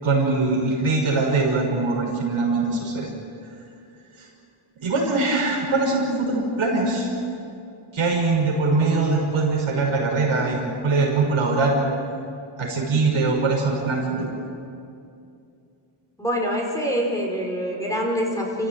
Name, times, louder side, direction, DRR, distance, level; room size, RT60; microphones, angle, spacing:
voice 1, 0.0-3.1 4.2-4.3 4.8-7.1 7.9-11.8 12.6-14.3, right 3 dB, 80° right, -1 dB, 6.2 m, -22 dB
voice 2, 16.2-18.7, equal, 5° left, -1 dB, 5.5 m, -25 dB
28.5 x 16.0 x 9.3 m, 2.5 s
cardioid pair, 90°, 49 cm